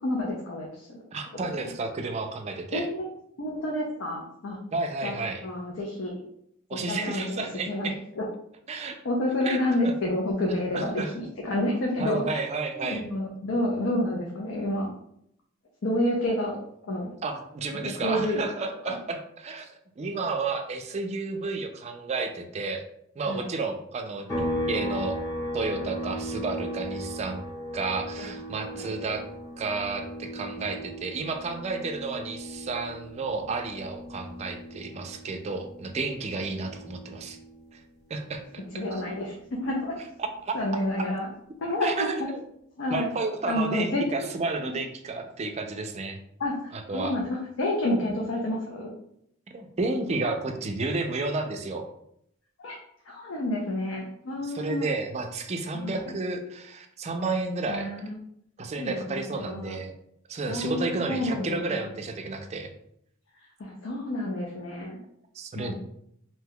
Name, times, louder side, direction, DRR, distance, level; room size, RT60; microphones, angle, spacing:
voice 1, 0.0-1.0 1.4-1.5 2.7-3.1 3.4-4.6 5.0-6.2 6.7-8.3 9.0-12.4 12.8-14.9 15.8-16.6 16.9-17.1 17.7-18.4 18.8-19.0 23.3-23.5 28.2-28.3 28.7-29.2 38.7-40.0 40.5-41.3 41.6-42.3 42.8-43.1 43.5-44.3 44.6-44.7 46.4-48.9 52.6-52.8 53.1-54.9 55.8-56.1 57.7-58.2 58.8-59.8 60.5-61.9 63.6-65.0 65.6-65.7, left 1 dB, 70° left, -1 dB, 0.5 m, -29 dB
voice 2, 1.1-2.9 4.7-5.5 6.7-8.0 8.7-9.0 9.4-9.6 10.7-11.1 12.0-13.0 17.2-19.7 20.0-22.8 23.2-25.2 25.5-27.4 27.7-29.2 29.6-37.4 37.7-37.8 38.1-38.4 38.7-39.0 40.2-40.5 41.8-42.4 42.9-46.2 46.7-47.1 49.5-51.9 54.4-57.9 58.6-59.9 60.3-62.7 65.3-65.7, right 3 dB, 35° right, 5 dB, 0.4 m, -31 dB
sound 1, 24.3-37.8 38.2-40.4, equal, 15° left, 0.9 m, -37 dB
2.6 x 2.2 x 3.5 m, 0.72 s
head